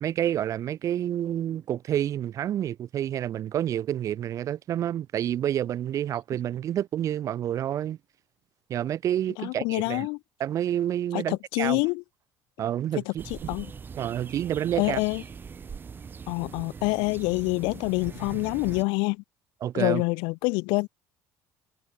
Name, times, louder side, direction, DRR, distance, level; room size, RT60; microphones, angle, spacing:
voice 1, 0.0-8.0 8.7-10.1 10.4-11.8 12.6-13.5 14.0-15.0 19.6-20.0, right 11 dB, 45° right, 0.5 m, -29 dB
voice 2, 9.4-10.2 11.1-12.0 12.9-13.7 14.8-15.2 16.3-19.2 19.7-20.9, left 28 dB, 85° left, 0.4 m, -27 dB
sound 1, 13.2-18.8, right 6 dB, 25° right, 1.1 m, -41 dB
cardioid pair, 130°, 8 cm